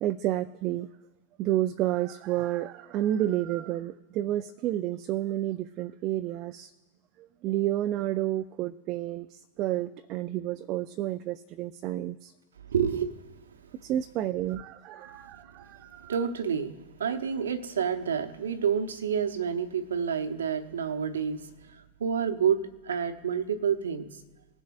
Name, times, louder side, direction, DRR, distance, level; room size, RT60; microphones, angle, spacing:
voice 1, 0.0-0.9 1.4-6.7 7.2-12.3 13.8-16.1, right 13 dB, 40° right, 8 dB, 0.4 m, -30 dB
voice 2, 12.7-13.2 16.1-21.5 22.0-24.1, right 7 dB, 65° right, 9 dB, 0.9 m, -28 dB
21.0 x 7.1 x 2.5 m, 1.3 s
figure-of-eight pair, 90°, 0 cm